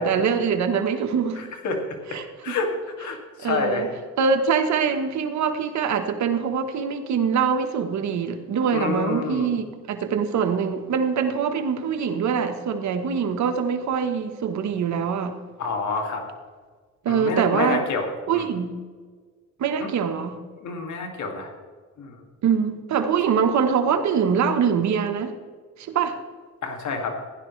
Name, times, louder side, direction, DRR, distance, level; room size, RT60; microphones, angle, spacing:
voice 1, 0.0-1.4 2.1-2.5 3.4-3.9 4.2-15.4 17.0-17.8 18.3-18.7 19.6-20.4 22.4-25.3 25.8-26.2, right 6 dB, 65° right, 7 dB, 1.2 m, -24 dB
voice 2, 1.4-3.9 8.7-9.5 15.6-16.2 17.1-18.5 19.8-19.9 20.6-21.5 22.0-22.2 26.6-27.2, left 3 dB, 70° left, 3 dB, 2.3 m, -28 dB
15.5 x 11.0 x 3.2 m, 1.5 s
cardioid pair, 90°, 30 cm